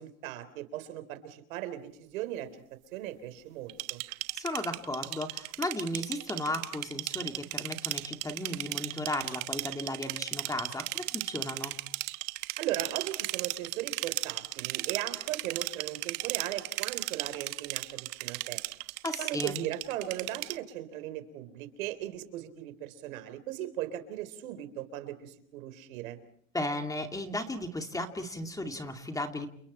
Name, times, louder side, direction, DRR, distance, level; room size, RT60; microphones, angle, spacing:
voice 1, 0.0-2.5 2.9-4.0 12.6-18.6 19.2-26.2, right 13 dB, 85° right, 10 dB, 3.8 m, -38 dB
sound 1, 3.7-20.6, right 23 dB, 60° right, 1.3 m, -35 dB
voice 2, 4.3-11.8 19.0-19.6 26.5-29.5, left 1 dB, 10° left, 5 dB, 2.4 m, -35 dB
29.5 x 29.5 x 4.3 m, 0.64 s
supercardioid pair, 140°, 40 cm